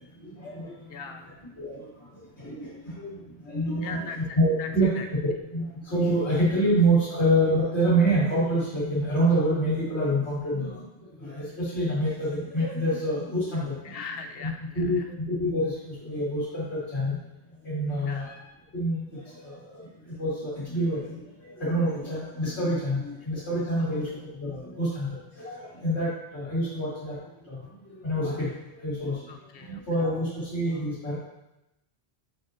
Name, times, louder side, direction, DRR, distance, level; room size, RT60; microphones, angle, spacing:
voice 1, 0.2-0.9 1.5-2.1 2.4-14.0 14.4-17.2 17.6-18.4 18.7-24.1 24.4-28.6 28.8-29.2 29.7-31.2, right 1 dB, 85° left, -10 dB, 2.8 m, -27 dB
voice 2, 0.9-1.4 3.8-4.7 5.0-5.1 13.8-15.0 18.0-18.3 23.8-23.9 29.3-29.8, left 5 dB, 65° left, 6 dB, 0.9 m, -40 dB
6.5 x 5.7 x 3.1 m, 0.89 s
omnidirectional pair, 1.1 m